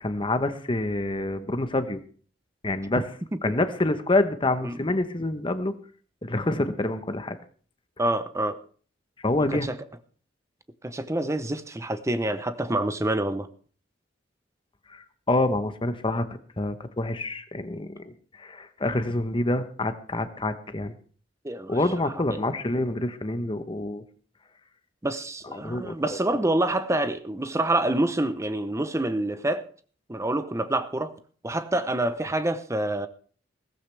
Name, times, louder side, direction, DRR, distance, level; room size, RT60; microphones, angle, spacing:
voice 1, 0.0-2.0 2.6-3.0 3.4-5.7 6.2-7.4 9.2-9.7 14.9-16.3 16.6-20.9 21.7-24.0 25.5-26.2, left 2 dB, 25° left, 1.0 m, -27 dB
voice 2, 8.0-8.6 9.5-9.7 10.8-13.5 21.4-21.8 25.0-29.6 30.1-31.1 31.4-33.1, right 1 dB, 15° right, 0.8 m, -27 dB
16.5 x 14.5 x 3.4 m
head